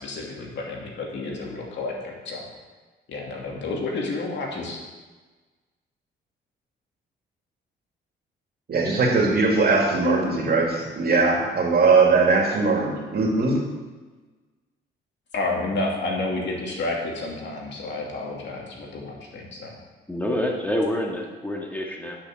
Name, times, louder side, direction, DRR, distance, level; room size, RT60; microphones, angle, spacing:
voice 1, 0.0-2.4 3.1-4.8 15.3-19.7, left 2 dB, 65° left, -1 dB, 2.6 m, -30 dB
voice 2, 8.7-13.6, right 3 dB, 50° right, 0 dB, 2.5 m, -20 dB
voice 3, 20.1-22.2, left 1 dB, 10° left, -1 dB, 2.1 m, -27 dB
10.5 x 6.1 x 6.5 m, 1.3 s
cardioid pair, 90°, 20 cm